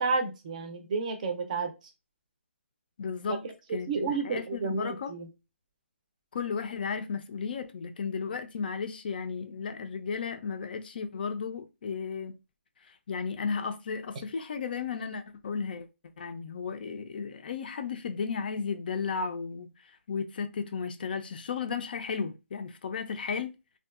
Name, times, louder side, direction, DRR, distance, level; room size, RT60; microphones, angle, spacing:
voice 1, 0.0-1.7 3.3-3.4 3.9-5.3, right 4 dB, 35° right, 0.5 m, -31 dB
voice 2, 3.0-3.5 3.7-5.1 6.3-12.4 12.8-15.9 16.2-23.6, left 5 dB, 45° left, 0.4 m, -34 dB
2.6 x 2.3 x 2.3 m
hypercardioid pair, 160°, 7 cm